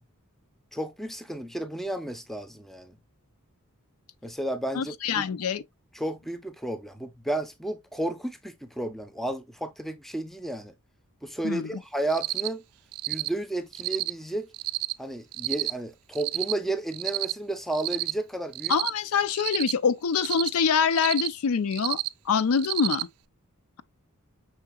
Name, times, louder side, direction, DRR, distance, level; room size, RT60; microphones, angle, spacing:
voice 1, 0.7-2.9 4.2-5.2 5.9-10.7 11.2-12.6 13.1-14.5 15.0-18.7, right 1 dB, ahead, 0.5 m, -32 dB
voice 2, 4.7-5.6 11.4-11.7 18.7-22.0 22.3-23.1, left 6 dB, 75° left, 0.4 m, -25 dB
Cricket, 12.1-12.5 12.9-13.3 13.7-14.1 14.5-14.9 15.3-15.7 16.1-16.5 16.9-17.3 17.7-18.1 18.5-18.9 19.3-19.7 20.1-20.5 20.9-21.3 21.7-22.1 22.6-23.0, right 17 dB, 90° right, 0.4 m, -30 dB
5.7 x 3.7 x 2.3 m
head